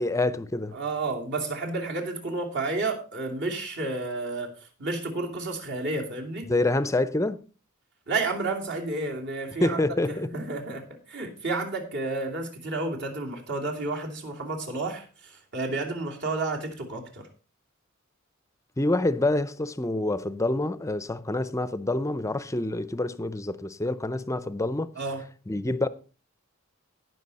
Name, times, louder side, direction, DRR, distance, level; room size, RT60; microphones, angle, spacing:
voice 1, 0.0-0.8 6.5-7.4 9.6-10.3 18.8-24.9 25.5-25.9, left 2 dB, 15° left, 0.6 m, -27 dB
voice 2, 0.7-4.5 4.8-6.5 8.1-9.8 10.1-17.2 25.0-25.2, right 3 dB, 55° right, 2.8 m, -31 dB
17.5 x 6.2 x 4.1 m
head